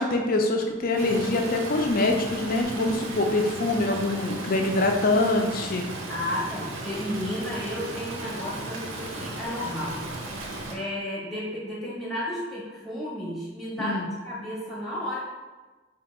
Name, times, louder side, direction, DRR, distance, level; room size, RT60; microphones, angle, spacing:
voice 1, 0.0-5.9 13.8-14.1, left 2 dB, 45° left, 3 dB, 0.5 m, -24 dB
Stream, 1.0-10.7, right 2 dB, 80° right, 0.7 m, -36 dB
voice 2, 6.1-10.1 10.7-15.2, left 1 dB, ahead, -4 dB, 0.9 m, -33 dB
4.8 x 2.6 x 3.5 m, 1.3 s
head